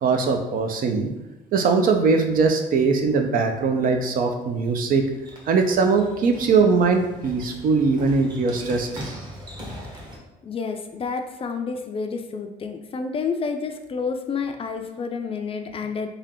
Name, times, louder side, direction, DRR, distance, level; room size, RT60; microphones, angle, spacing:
voice 1, 0.0-1.1 1.5-5.0 5.5-8.9, right 4 dB, 55° right, 5 dB, 0.6 m, -21 dB
sound 1, 4.5-10.2, equal, 25° right, 1.1 m, -40 dB
voice 2, 10.4-16.1, left 5 dB, 35° left, 6 dB, 0.4 m, -29 dB
3.4 x 2.8 x 3.6 m, 0.99 s
cardioid pair, 110°, 17 cm